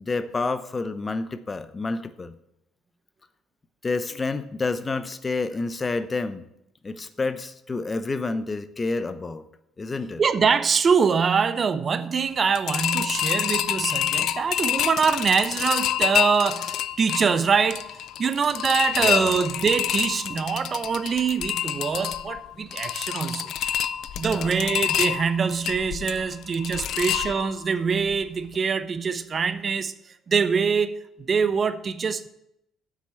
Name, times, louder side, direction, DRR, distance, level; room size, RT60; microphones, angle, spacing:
voice 1, 0.0-2.4 3.8-6.5 6.8-9.4 9.8-10.2 19.0-19.4 24.3-24.6 26.8-27.0, left 3 dB, 30° left, 0.8 m, -29 dB
voice 2, 10.2-17.8 18.2-23.5 24.2-29.9 30.3-32.3, right 6 dB, 45° right, 0.7 m, -24 dB
sound 1, 12.5-27.7 28.1-28.2 28.5-28.6, left 11 dB, 70° left, 0.4 m, -28 dB
7.7 x 6.1 x 7.7 m
supercardioid pair, 60°, 0 cm